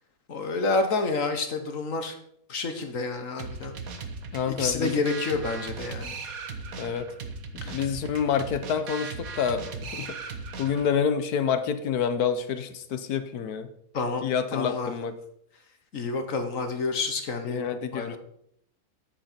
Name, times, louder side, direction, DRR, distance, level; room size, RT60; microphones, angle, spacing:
voice 1, 0.3-2.2 2.5-3.8 4.5-6.2 7.6-7.8 13.9-14.2 14.5-14.9 15.9-18.2, left 3 dB, 60° left, 6 dB, 1.6 m, -29 dB
sound 1, 3.4-11.0, right 4 dB, 65° right, 1.5 m, -38 dB
voice 2, 4.3-5.0 6.8-7.1 7.7-10.1 10.6-13.7 14.2-15.1 17.4-18.2, left 7 dB, 75° left, 10 dB, 1.4 m, -28 dB
9.7 x 8.9 x 4.4 m, 0.71 s
omnidirectional pair, 1.7 m